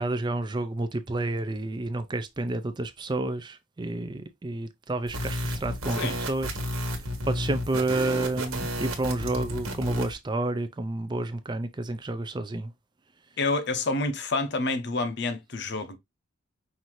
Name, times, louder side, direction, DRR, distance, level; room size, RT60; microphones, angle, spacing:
voice 1, 0.0-6.9 7.2-12.7, right 2 dB, 20° right, 0.4 m, -30 dB
sound 1, 5.1-10.1, equal, 85° right, 1.4 m, -32 dB
voice 2, 13.4-16.0, left 3 dB, 50° left, 0.7 m, -28 dB
5.7 x 2.6 x 3.1 m
head